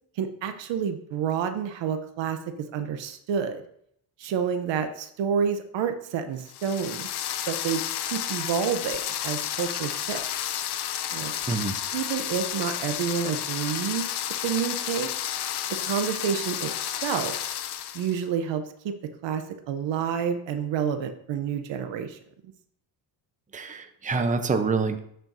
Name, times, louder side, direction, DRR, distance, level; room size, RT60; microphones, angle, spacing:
voice 1, 0.2-3.6 4.2-7.1 7.5-10.2 11.1-11.3 11.9-14.1 14.4-15.1 15.7-16.7 17.0-17.4 17.9-18.9 19.2-22.2, right 7 dB, 70° right, 8 dB, 0.8 m, -29 dB
sound 1, 6.5-18.2, left 11 dB, 60° left, 0.7 m, -31 dB
voice 2, 23.5-25.0, right 4 dB, 15° right, 7 dB, 0.7 m, -26 dB
12.0 x 4.5 x 2.7 m, 0.70 s
cardioid pair, 90°, 46 cm